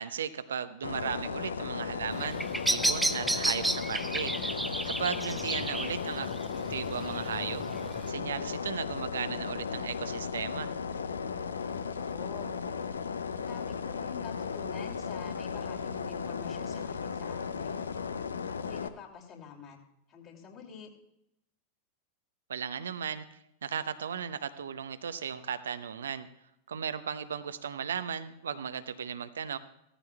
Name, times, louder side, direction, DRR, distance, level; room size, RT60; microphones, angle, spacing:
voice 1, 0.0-4.3 4.9-6.3 6.7-7.6 8.1-10.7 22.5-23.2 23.6-26.3 26.7-29.6, right 7 dB, 65° right, 12 dB, 0.6 m, -36 dB
sound 1, 0.8-18.9, left 6 dB, 70° left, 0.6 m, -36 dB
Bird vocalization bird call bird song, 2.1-8.1, right 1 dB, 5° right, 0.5 m, -33 dB
voice 2, 3.2-3.6 11.4-12.6 13.3-18.1 18.5-19.8 20.1-20.9, left 7 dB, 35° left, 1 dB, 2.6 m, -47 dB
16.5 x 14.0 x 2.3 m, 0.82 s
figure-of-eight pair, 90°, 0 cm